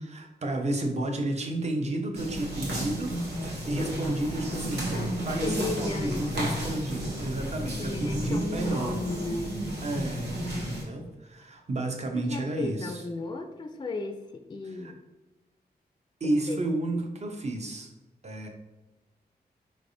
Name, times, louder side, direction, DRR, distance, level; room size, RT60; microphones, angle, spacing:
voice 1, 0.0-9.0 9.8-13.0 14.6-14.9 16.2-17.9 18.2-18.5, right 1 dB, 40° right, 3 dB, 0.7 m, -32 dB
sound 1, 2.1-10.8, equal, 75° right, 1.0 m, -33 dB
voice 2, 5.4-6.6 7.8-9.6 12.1-15.0 16.2-16.6, left 3 dB, 25° left, 6 dB, 0.4 m, -35 dB
4.8 x 3.2 x 2.6 m, 1.1 s
cardioid pair, 75°, 17 cm